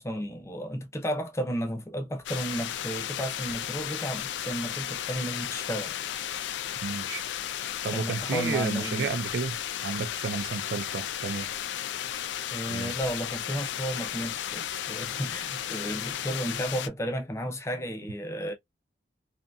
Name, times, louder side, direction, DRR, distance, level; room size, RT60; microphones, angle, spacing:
voice 1, 0.0-5.9 7.9-9.1 12.5-18.5, equal, 15° left, 0.5 m, -33 dB
sound 1, 2.3-16.9, left 10 dB, 80° left, 0.3 m, -34 dB
voice 2, 6.8-7.2 7.8-9.6 9.8-11.5 12.7-12.9, right 5 dB, 70° right, 0.4 m, -32 dB
2.6 x 2.5 x 2.3 m
head